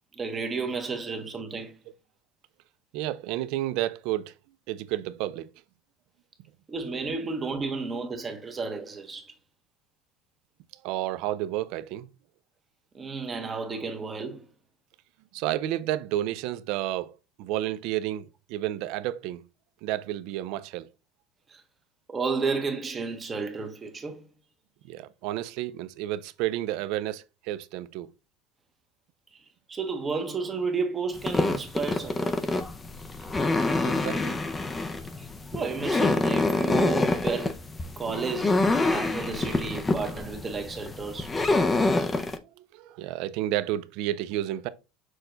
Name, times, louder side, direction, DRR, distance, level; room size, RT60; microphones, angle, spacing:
voice 1, 0.1-1.8 6.7-9.3 12.9-14.4 21.5-21.6 22.1-24.3 29.7-32.4 35.2-37.6 38.0-41.3, right 4 dB, 20° right, 0.7 m, -32 dB
voice 2, 2.9-4.3 4.7-5.5 7.0-7.1 10.8-12.1 15.3-17.1 17.4-19.5 19.8-20.9 24.8-28.1 33.8-34.4 42.6-44.7, right 14 dB, 60° right, 0.3 m, -31 dB
sound 1, 31.2-42.4, left 2 dB, 15° left, 0.4 m, -26 dB
6.2 x 2.2 x 3.7 m
cardioid pair, 155°, 0 cm